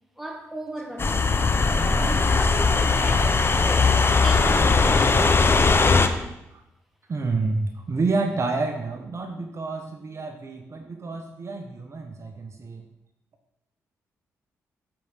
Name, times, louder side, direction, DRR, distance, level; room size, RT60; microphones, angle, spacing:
voice 1, 0.2-1.5 1.9-6.3, right 1 dB, 5° right, 3 dB, 1.7 m, -37 dB
sound 1, 1.0-6.1, left 4 dB, 35° left, 0.8 m, -19 dB
voice 2, 7.1-12.8, right 3 dB, 45° right, 4 dB, 1.1 m, -29 dB
7.6 x 4.9 x 5.7 m, 0.87 s
supercardioid pair, 45°, 7 cm